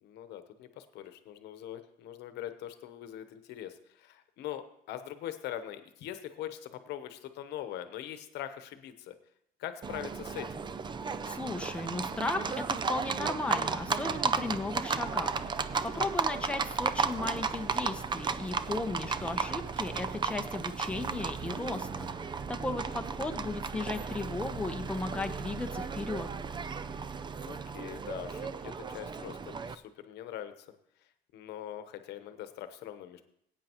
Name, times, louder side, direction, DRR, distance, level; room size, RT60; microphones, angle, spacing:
voice 1, 0.0-9.1 9.6-10.5 16.0-16.7 27.5-30.7 31.3-33.2, left 11 dB, 85° left, 10 dB, 1.0 m, -42 dB
Livestock farm animals working animals, 9.8-29.7, right 5 dB, 25° right, 0.5 m, -34 dB
voice 2, 11.2-15.3 15.8-26.3, left 2 dB, 5° left, 4 dB, 0.9 m, -36 dB
17.5 x 8.7 x 3.0 m, 0.72 s
cardioid pair, 110°, 17 cm